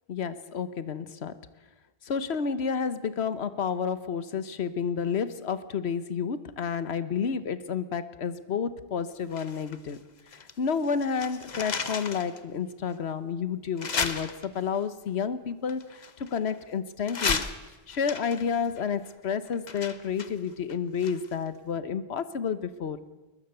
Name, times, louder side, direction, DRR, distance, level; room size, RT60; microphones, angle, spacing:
voice 1, 0.1-1.3 2.1-10.0 10.6-15.8 16.2-17.4 17.9-23.0, left 6 dB, 85° left, 14 dB, 1.3 m, -30 dB
sound 1, 9.3-10.6 10.8-12.4 12.9-13.0 13.8-14.8 15.7-16.6 17.1-21.5 21.7-21.8, left 5 dB, 45° left, 1.1 m, -34 dB
21.5 x 20.5 x 6.8 m, 1.1 s
omnidirectional pair, 1.1 m